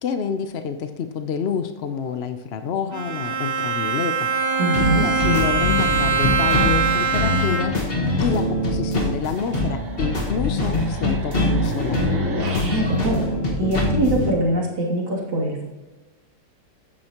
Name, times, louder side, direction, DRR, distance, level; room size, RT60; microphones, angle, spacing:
voice 1, 0.0-4.3 4.9-7.7 8.2-12.0, left 6 dB, 70° left, 8 dB, 0.6 m, -28 dB
Bowed string instrument, 2.9-8.0, right 5 dB, 45° right, 0.8 m, -23 dB
sound 1, 4.3-14.5, right 1 dB, 85° right, 2.4 m, -36 dB
voice 2, 4.6-5.1 12.5-13.2 13.6-15.6, right 1 dB, 65° right, -4 dB, 3.4 m, -23 dB
sound 2, 4.7-14.3, left 1 dB, 30° left, 1.8 m, -23 dB
13.0 x 9.9 x 3.0 m, 1.2 s
omnidirectional pair, 2.0 m